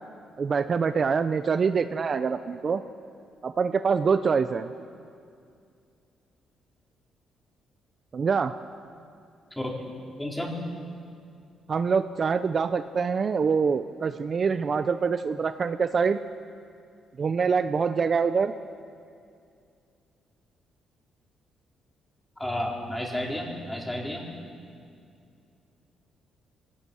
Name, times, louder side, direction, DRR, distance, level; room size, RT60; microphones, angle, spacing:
voice 1, 0.4-2.8 3.4-4.7 8.1-8.5 11.7-16.2 17.2-18.5, right 5 dB, 45° right, 10 dB, 0.7 m, -25 dB
voice 2, 9.6-9.9 10.2-10.5 22.4-24.3, left 1 dB, 10° left, -1 dB, 4.4 m, -31 dB
24.0 x 17.5 x 6.4 m, 2.4 s
cardioid pair, 90°, 0 cm